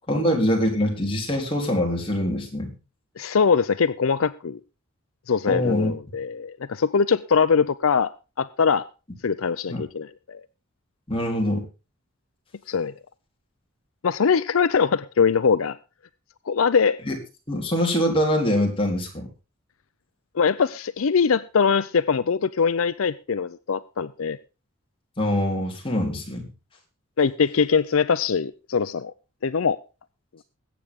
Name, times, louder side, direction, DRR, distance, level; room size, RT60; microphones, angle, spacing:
voice 1, 0.1-2.7 5.5-5.9 9.7-9.8 11.1-11.7 17.1-17.2 17.5-19.3 25.2-26.5, equal, 25° left, 4.0 m, -24 dB
voice 2, 3.2-4.6 5.3-8.1 8.4-8.9 9.2-10.4 12.7-12.9 14.0-15.8 16.5-17.0 20.3-24.4 27.2-29.1 29.4-29.8, left 6 dB, 75° left, 0.6 m, -22 dB
21.0 x 8.6 x 3.6 m
head